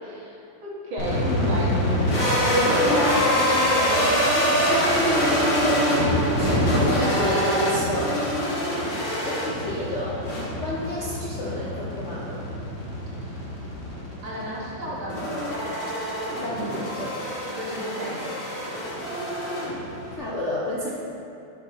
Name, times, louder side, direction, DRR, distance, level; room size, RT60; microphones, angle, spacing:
voice 1, 0.0-1.7 8.8-9.1 13.2-13.3 14.2-15.7 17.5-18.3 20.9-21.0, equal, 85° right, -5 dB, 2.2 m, -34 dB
sound 1, 1.0-20.2, equal, 80° left, 2.7 m, -25 dB
voice 2, 1.2-5.0 5.6-8.2 9.2-10.2 10.6-12.4 16.4-17.2 20.1-20.9, left 1 dB, 65° left, -6 dB, 0.7 m, -30 dB
6.7 x 5.8 x 4.2 m, 2.6 s
omnidirectional pair, 2.2 m